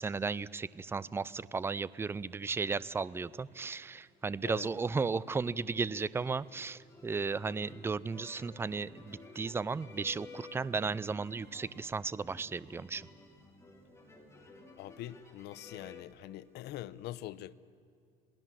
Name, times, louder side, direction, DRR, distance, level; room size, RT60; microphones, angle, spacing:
voice 1, 0.0-13.1, right 4 dB, 15° right, 0.5 m, -35 dB
sound 1, 1.3-2.1 2.5-16.0, left 3 dB, 15° left, 3.8 m, -55 dB
voice 2, 14.8-17.5, left 14 dB, 65° left, 0.9 m, -44 dB
27.5 x 19.0 x 7.5 m
cardioid pair, 140°, 18 cm